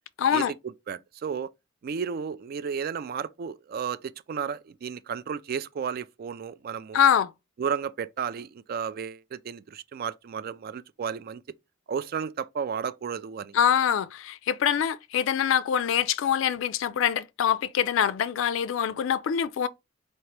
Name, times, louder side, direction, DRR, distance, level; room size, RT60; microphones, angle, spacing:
voice 1, 0.2-0.5 6.9-7.3 13.5-19.7, left 8 dB, 70° left, 0.3 m, -24 dB
voice 2, 0.9-1.5 1.8-7.0 7.6-11.4 11.9-13.5, right 7 dB, 50° right, 0.3 m, -33 dB
4.2 x 2.9 x 3.2 m
head